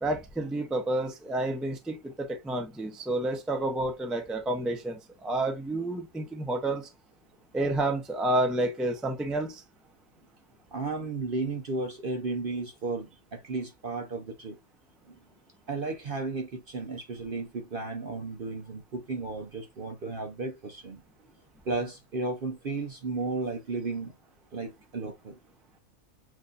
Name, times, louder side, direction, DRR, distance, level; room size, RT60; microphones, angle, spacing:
voice 1, 0.0-6.9 7.5-9.6, right 1 dB, ahead, 0.5 m, -30 dB
voice 2, 10.7-14.6 15.7-21.0 21.7-24.1 24.5-25.4, right 3 dB, 50° right, 0.8 m, -34 dB
7.5 x 2.6 x 2.5 m
omnidirectional pair, 1.5 m